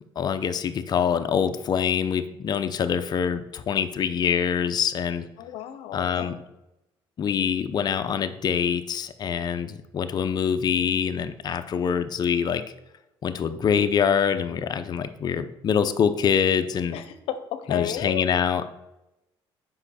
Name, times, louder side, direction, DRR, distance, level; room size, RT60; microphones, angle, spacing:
voice 1, 0.2-5.3 5.9-6.3 7.2-12.6 13.2-17.0 17.7-18.7, left 7 dB, 45° left, 9 dB, 0.7 m, -25 dB
voice 2, 5.4-6.3 16.9-18.3, left 10 dB, 80° left, 10 dB, 0.8 m, -33 dB
7.8 x 5.4 x 4.2 m, 0.94 s
cardioid pair, 105°, 10 cm